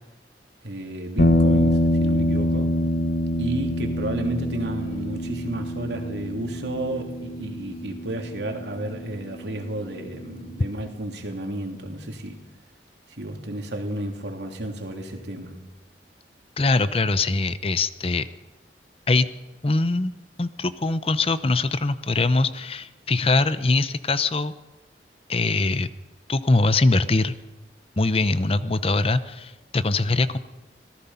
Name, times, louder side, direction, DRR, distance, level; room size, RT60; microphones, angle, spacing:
voice 1, 0.6-2.7 3.4-12.4 13.2-15.5, right 1 dB, 80° right, 3 dB, 3.2 m, -32 dB
sound 1, 1.2-9.5, left 1 dB, 65° left, 1.4 m, -25 dB
voice 2, 16.6-18.3 19.1-19.3 19.6-20.1 20.4-24.5 25.3-25.9 26.3-27.3 28.0-30.4, left 3 dB, 35° left, 13 dB, 0.7 m, -22 dB
25.5 x 18.0 x 5.7 m, 1.1 s
head